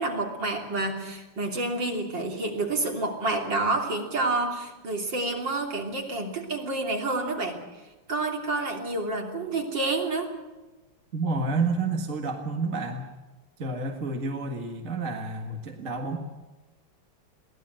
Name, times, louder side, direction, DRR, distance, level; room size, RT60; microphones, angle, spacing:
voice 1, 0.0-7.6 8.1-10.3, right 2 dB, 55° right, 2 dB, 3.8 m, -29 dB
voice 2, 11.1-13.1 13.6-16.2, right 3 dB, 40° right, 3 dB, 1.9 m, -29 dB
23.0 x 17.5 x 7.7 m, 1.1 s
omnidirectional pair, 2.4 m